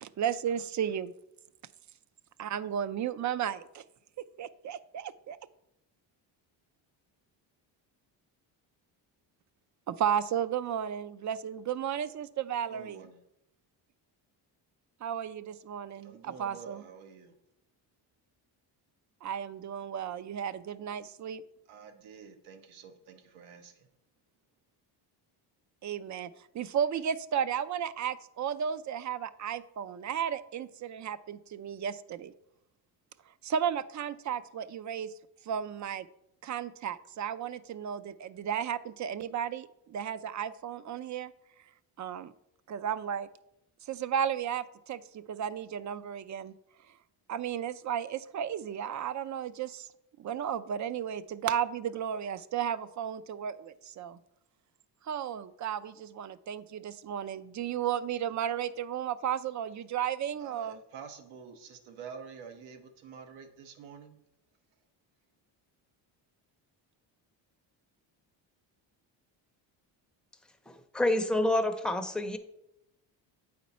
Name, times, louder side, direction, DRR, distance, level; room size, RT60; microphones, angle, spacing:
voice 1, 0.0-1.1 2.4-3.8 4.4-5.4 9.9-13.1 15.0-16.8 19.2-21.4 25.8-26.3 26.5-32.3 33.4-35.1 35.5-36.1 36.4-41.3 42.0-42.3 42.7-43.3 43.9-46.5 47.3-49.9 50.2-54.2 55.1-60.8, right 9 dB, 40° right, 15 dB, 0.4 m, -34 dB
voice 2, 12.7-13.2 16.0-17.3 21.7-23.9 60.4-64.2, right 6 dB, 90° right, 6 dB, 1.1 m, -48 dB
voice 3, 70.9-72.4, left 1 dB, ahead, 6 dB, 0.6 m, -27 dB
8.4 x 4.3 x 4.2 m, 0.82 s
cardioid pair, 85°, 46 cm